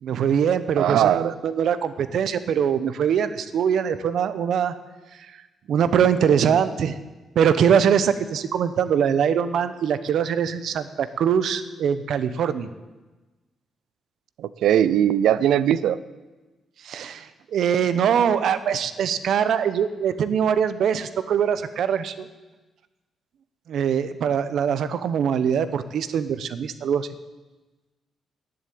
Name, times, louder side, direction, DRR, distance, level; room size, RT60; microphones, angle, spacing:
voice 1, 0.0-4.7 5.7-7.0 7.3-12.7 16.8-22.3 23.7-27.1, right 8 dB, 70° right, 13 dB, 0.9 m, -22 dB
voice 2, 0.8-1.4 14.4-16.0, right 10 dB, 90° right, 16 dB, 0.6 m, -20 dB
11.0 x 11.0 x 8.5 m, 1.2 s
cardioid pair, 120°, 0 cm